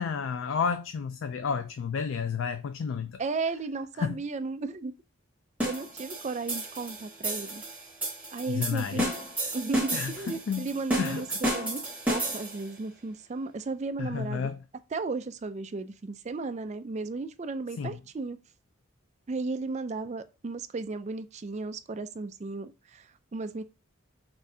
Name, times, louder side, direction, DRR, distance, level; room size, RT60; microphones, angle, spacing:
voice 1, 0.0-3.2 4.0-4.2 8.5-9.1 9.9-10.1 10.5-10.7 11.0-11.2 14.0-14.6 17.8-18.0, left 6 dB, 60° left, 0.3 m, -31 dB
voice 2, 3.2-4.9 5.6-7.6 8.3-9.1 9.5-14.5 14.9-18.4 19.3-23.6, right 3 dB, 30° right, 0.3 m, -34 dB
sound 1, 5.6-12.7, right 1 dB, 5° right, 1.2 m, -32 dB
6.0 x 2.6 x 2.6 m
head